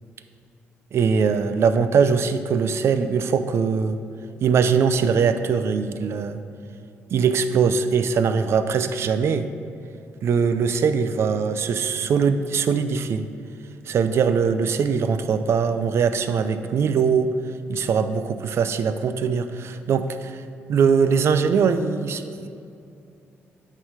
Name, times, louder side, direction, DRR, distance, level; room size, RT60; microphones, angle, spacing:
voice 1, 0.9-4.0 4.4-6.4 7.1-9.5 10.2-13.2 13.9-17.3 17.7-20.4 20.7-22.5, right 6 dB, 60° right, 10 dB, 0.4 m, -21 dB
8.9 x 3.7 x 4.8 m, 2.5 s
cardioid pair, 95°, 5 cm